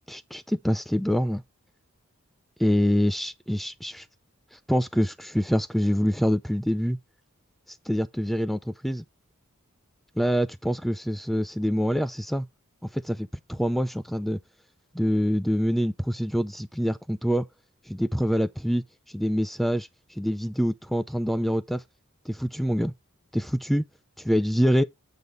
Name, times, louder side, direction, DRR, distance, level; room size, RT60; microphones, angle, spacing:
voice 1, 0.1-1.4 2.6-4.0 4.7-7.0 7.9-9.0 10.2-12.5 12.9-14.4 14.9-17.4 17.9-18.8 19.1-19.9 20.2-21.8 22.3-22.9 23.3-23.9 24.2-24.8, equal, ahead, 0.5 m, -25 dB
8.1 x 5.3 x 3.8 m
head